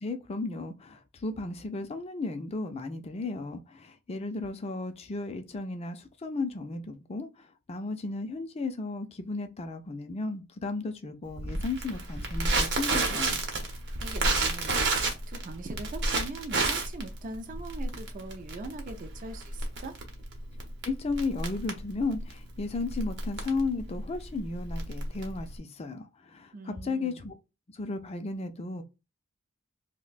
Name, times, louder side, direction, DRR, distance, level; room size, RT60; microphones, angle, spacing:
voice 1, 0.0-13.4 20.8-27.3 27.7-28.8, left 3 dB, 30° left, 0.4 m, -34 dB
Crackle, 11.4-25.6, right 3 dB, 55° right, 0.8 m, -31 dB
voice 2, 13.9-19.9 26.5-27.2, right 2 dB, 35° right, 0.4 m, -42 dB
2.6 x 2.1 x 3.9 m
head